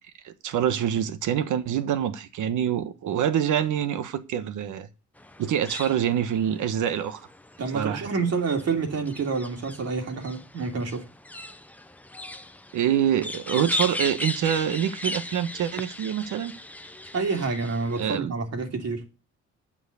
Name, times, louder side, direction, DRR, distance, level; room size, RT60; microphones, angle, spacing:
voice 1, 0.2-4.9 5.4-7.2 7.7-8.1 12.7-16.5 18.0-18.3, right 9 dB, 80° right, 1.3 m, -26 dB
sound 1, 5.2-18.2, left 1 dB, 5° left, 0.9 m, -37 dB
voice 2, 7.6-11.1 17.1-19.1, right 4 dB, 55° right, 3.1 m, -28 dB
9.1 x 6.2 x 8.2 m
cardioid pair, 90°, 30 cm